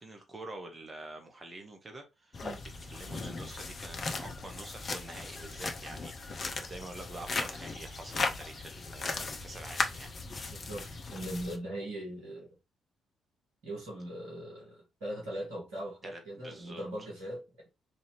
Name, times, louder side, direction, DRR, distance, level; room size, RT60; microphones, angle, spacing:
voice 1, 0.0-10.6 16.0-16.8, right 2 dB, 30° right, 1.3 m, -47 dB
sound 1, 2.3-11.6, left 3 dB, 40° left, 0.7 m, -37 dB
voice 2, 10.5-12.5 13.6-17.7, right 1 dB, 70° right, 2.0 m, -40 dB
4.3 x 2.7 x 3.1 m
figure-of-eight pair, 40°, 0 cm